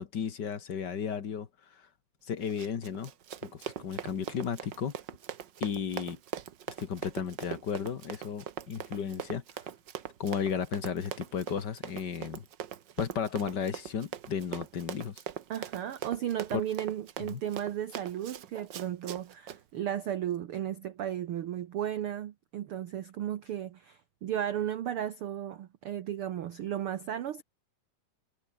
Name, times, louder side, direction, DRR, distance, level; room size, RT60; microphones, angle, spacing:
voice 1, 0.0-1.5 2.3-3.1 3.4-4.9 5.6-6.2 6.8-9.4 10.2-12.4 13.0-15.2 16.5-16.6 17.3-17.4, left 7 dB, 45° left, 1.5 m, -34 dB
Run, 2.4-19.6, right 9 dB, 90° right, 0.9 m, -41 dB
voice 2, 15.5-27.4, right 10 dB, 70° right, 1.3 m, -34 dB
omnidirectional pair, 3.8 m